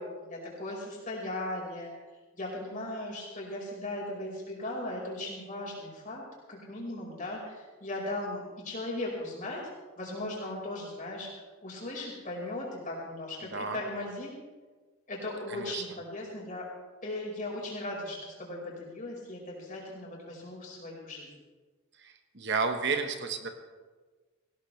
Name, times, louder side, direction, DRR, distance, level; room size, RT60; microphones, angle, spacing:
voice 1, 0.0-1.9 2.3-6.2 6.5-9.6 10.0-11.3 11.6-14.3 15.1-16.7 17.0-21.3, left 1 dB, 40° left, -3 dB, 4.9 m, -37 dB
voice 2, 15.5-15.8 22.0-23.5, right 4 dB, 55° right, 6 dB, 1.2 m, -31 dB
18.5 x 17.5 x 3.3 m, 1.4 s
head